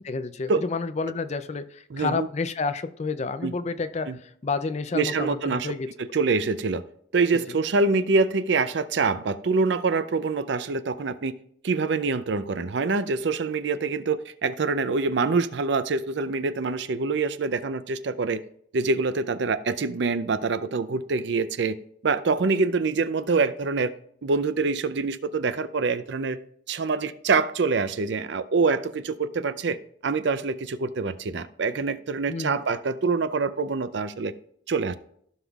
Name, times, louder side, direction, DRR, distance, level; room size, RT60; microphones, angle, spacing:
voice 1, 0.0-5.9 32.3-32.6, left 4 dB, 35° left, 11 dB, 0.5 m, -30 dB
voice 2, 1.9-2.3 3.4-3.5 4.1-4.2 4.9-5.7 6.0-6.8 7.1-11.3 11.6-18.4 18.7-21.8 22.0-23.9 24.2-26.4 26.7-29.8 30.0-34.3 34.7-34.9, right 4 dB, 65° right, 13 dB, 0.5 m, -25 dB
15.5 x 5.5 x 2.4 m, 0.67 s
head